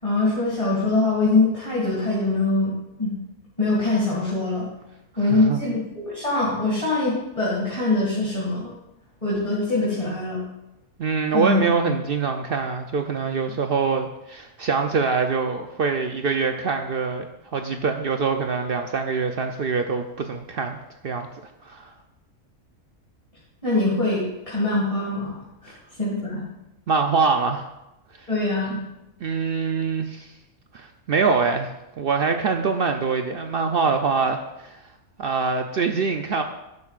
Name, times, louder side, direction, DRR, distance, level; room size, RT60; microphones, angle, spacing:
voice 1, 0.0-2.7 3.0-3.1 3.6-4.7 5.2-8.7 9.2-10.4 11.3-11.6 23.6-25.3 25.6-25.7 26.0-26.4 28.3-28.8, left 2 dB, 25° left, -6 dB, 2.1 m, -23 dB
voice 2, 5.3-5.7 11.0-20.8 21.0-21.3 21.6-21.9 26.9-27.6 28.2-28.3 29.2-30.3 30.7-34.8 35.2-36.4, right 5 dB, 65° right, 5 dB, 0.6 m, -24 dB
11.5 x 9.6 x 2.4 m, 0.93 s
omnidirectional pair, 1.5 m